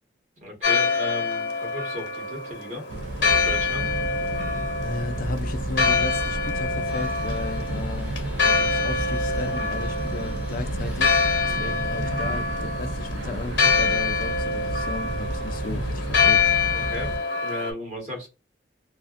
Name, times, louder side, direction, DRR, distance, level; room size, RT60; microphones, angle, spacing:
voice 1, 0.4-2.8 3.3-3.9 11.5-11.7 16.7-17.2 17.4-18.3, left 1 dB, 40° right, 1.2 m, -35 dB
Church bell, 0.6-17.7, left 4 dB, 70° left, 0.8 m, -25 dB
sound 1, 2.9-17.2, right 1 dB, 70° right, 0.4 m, -31 dB
voice 2, 4.8-16.4, left 3 dB, 50° left, 0.3 m, -35 dB
sound 2, 6.8-12.0, equal, 10° right, 0.5 m, -45 dB
2.5 x 2.3 x 2.4 m
head